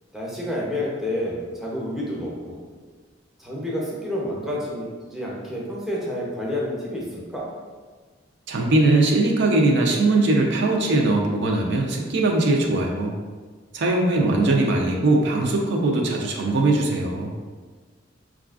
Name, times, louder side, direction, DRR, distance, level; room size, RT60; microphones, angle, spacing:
voice 1, 0.1-2.6 3.4-7.4 14.1-14.6, left 1 dB, ahead, -5 dB, 0.6 m, -29 dB
voice 2, 8.5-13.1 13.7-17.3, right 2 dB, 65° right, 1 dB, 0.4 m, -20 dB
4.7 x 2.4 x 2.4 m, 1.5 s
head